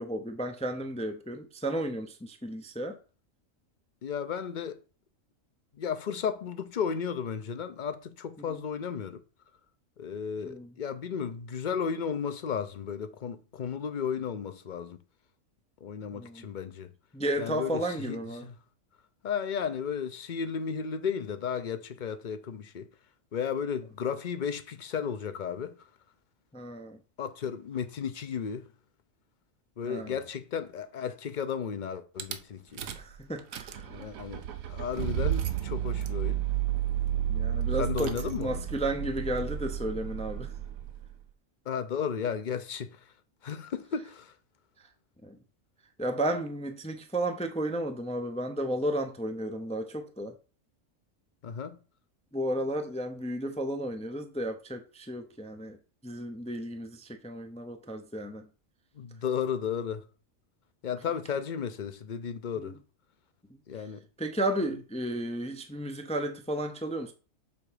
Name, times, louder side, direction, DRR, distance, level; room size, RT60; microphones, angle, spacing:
voice 1, 0.0-3.0 8.5-8.6 10.4-10.7 16.1-16.5 17.1-18.5 26.5-27.0 29.9-30.2 33.0-33.9 37.3-40.5 45.2-45.4 46.0-50.4 52.3-55.8 56.0-58.5 62.6-62.7 64.2-67.1, right 1 dB, 10° left, 0.3 m, -33 dB
voice 2, 4.0-4.8 5.7-9.2 10.0-15.0 15.8-16.9 17.4-18.5 19.2-22.9 23.3-25.8 27.2-28.7 29.8-32.8 33.9-36.4 37.8-38.6 41.7-43.1 43.4-44.3 51.4-51.8 58.9-60.0 60.8-62.8 63.7-64.0, left 7 dB, 50° left, 0.6 m, -34 dB
Rattle / Car / Engine starting, 32.2-32.4 32.8-33.1 33.4-41.1, right 10 dB, 90° right, 1.2 m, -32 dB
7.1 x 3.6 x 5.0 m
omnidirectional pair, 1.4 m